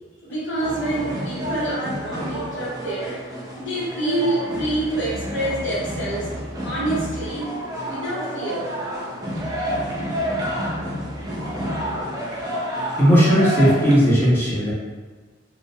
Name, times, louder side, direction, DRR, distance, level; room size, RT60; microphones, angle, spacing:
voice 1, 0.2-3.2 3.6-6.3 6.6-7.5 7.9-9.2, right 1 dB, 70° left, -8 dB, 0.7 m, -27 dB
sound 1, 0.6-14.0, equal, 20° right, 0.4 m, -29 dB
voice 2, 13.0-14.7, equal, 15° left, -9 dB, 0.7 m, -16 dB
2.4 x 2.0 x 2.6 m, 1.4 s
head